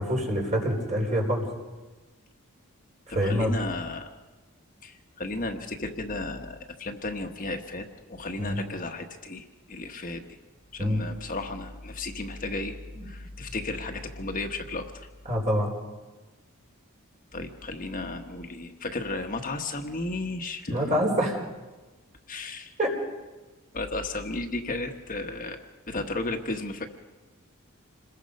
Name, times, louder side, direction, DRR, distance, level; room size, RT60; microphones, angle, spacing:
voice 1, 0.0-1.5 3.1-3.6 8.4-8.6 10.8-11.0 12.9-13.0 15.3-15.7 20.7-21.4 22.8-22.9, equal, 35° right, 0 dB, 4.7 m, -25 dB
voice 2, 3.2-4.1 4.8-10.2 10.7-12.8 13.0-15.1 17.3-21.0 22.3-22.7 23.7-25.6 25.9-26.9, left 2 dB, 40° left, 4 dB, 1.2 m, -34 dB
27.0 x 21.0 x 5.3 m, 1.2 s
head